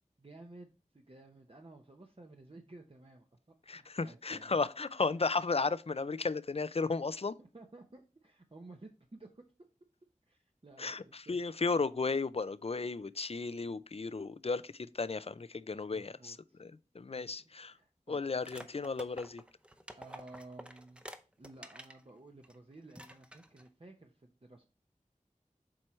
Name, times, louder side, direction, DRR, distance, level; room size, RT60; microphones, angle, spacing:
voice 1, 0.2-3.2 3.6-4.6 7.4-9.4 10.3-11.4 15.9-16.6 17.1-18.2 20.0-21.0 21.4-24.6, right 2 dB, 45° right, 0.8 m, -54 dB
voice 2, 3.7-7.3 10.8-17.7 18.1-19.4, left 4 dB, 50° left, 0.4 m, -34 dB
sound 1, 18.4-22.0 22.4-22.5 22.9-23.7, equal, 10° right, 0.6 m, -50 dB
7.6 x 4.4 x 3.1 m
wide cardioid pair, 40°, 13 cm